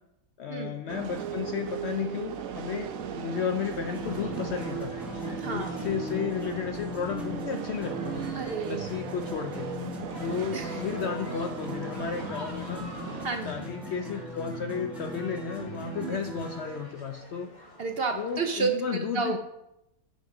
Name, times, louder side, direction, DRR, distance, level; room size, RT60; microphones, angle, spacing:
voice 1, 0.4-8.3 8.6-9.7 10.2-12.8 13.4-17.5 18.1-19.4, left 7 dB, 65° left, 6 dB, 0.7 m, -33 dB
sound 1, 0.9-13.3, right 7 dB, 70° right, 1.0 m, -37 dB
sound 2, 3.7-16.8, left 1 dB, ahead, 1.4 m, -39 dB
sound 3, 3.9-18.6, left 1 dB, 30° left, 1.3 m, -49 dB
voice 2, 5.4-5.8 8.3-8.9 10.5-10.8 13.2-13.7 16.0-16.2 17.8-19.4, right 5 dB, 55° right, 5 dB, 0.7 m, -31 dB
8.9 x 5.2 x 4.7 m, 0.85 s
omnidirectional pair, 1.5 m